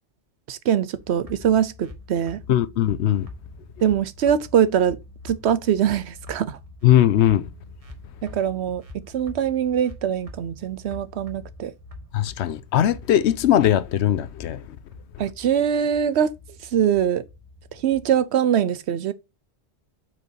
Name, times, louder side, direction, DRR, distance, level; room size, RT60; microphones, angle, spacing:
voice 1, 0.5-2.4 3.8-5.0 5.2-6.6 8.2-11.7 15.2-16.3 16.6-17.2 17.7-19.1, right 9 dB, 75° right, 0.9 m, -23 dB
sound 1, 0.9-18.2, left 2 dB, 30° right, 1.6 m, -44 dB
voice 2, 2.5-3.3 6.8-7.5 12.1-14.6, left 11 dB, 75° left, 0.9 m, -19 dB
8.0 x 4.6 x 2.7 m
omnidirectional pair, 1.2 m